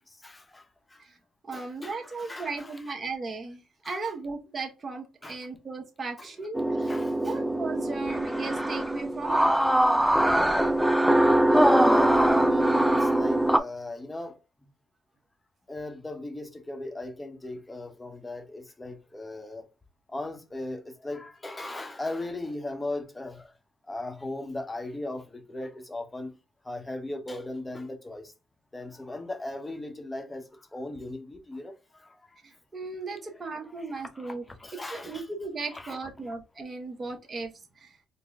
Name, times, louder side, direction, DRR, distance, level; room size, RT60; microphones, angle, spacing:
voice 1, 0.1-1.1 1.5-2.8 3.8-4.1 5.2-5.4 6.2-6.3 6.8-7.3 10.6-10.7 11.5-14.4 15.7-19.7 20.1-23.5 23.9-26.4 26.6-28.3 28.7-32.4 33.6-35.3 35.7-36.0 36.3-36.4, left 2 dB, 15° left, 0.8 m, -37 dB
voice 2, 1.5-6.9 7.2-9.5 32.4-34.4 34.9-37.5 37.8-38.0, right 3 dB, 35° right, 0.9 m, -36 dB
sound 1, 6.5-13.6, right 1 dB, 5° right, 0.4 m, -22 dB
3.7 x 2.1 x 3.5 m
cardioid pair, 90°, 0 cm